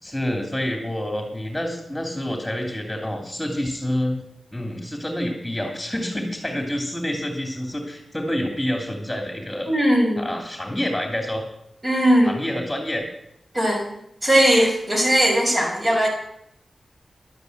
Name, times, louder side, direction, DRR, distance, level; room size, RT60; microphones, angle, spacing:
voice 1, 0.0-4.2 4.5-9.7 10.2-11.4 12.2-13.1, left 1 dB, 5° left, 2 dB, 2.8 m, -27 dB
voice 2, 9.7-10.3 11.8-12.3 13.5-13.8 14.2-16.1, right 1 dB, 40° right, 0 dB, 6.0 m, -18 dB
11.5 x 9.4 x 8.0 m, 0.76 s
cardioid pair, 55°, 0 cm